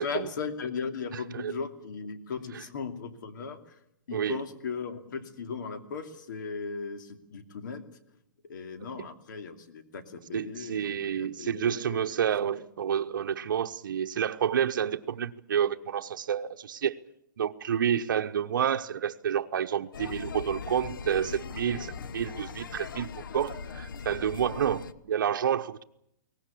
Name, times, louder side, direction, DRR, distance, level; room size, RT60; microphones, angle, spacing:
voice 1, 0.0-3.8 4.1-7.8 8.5-12.2, left 5 dB, 70° left, 2.7 m, -37 dB
voice 2, 1.1-1.6 4.1-4.4 9.0-9.1 10.3-17.0 17.4-25.8, right 8 dB, 75° right, 1.0 m, -29 dB
sound 1, 19.9-24.9, left 6 dB, 85° left, 1.0 m, -40 dB
22.5 x 18.5 x 8.5 m
hypercardioid pair, 160°, 11 cm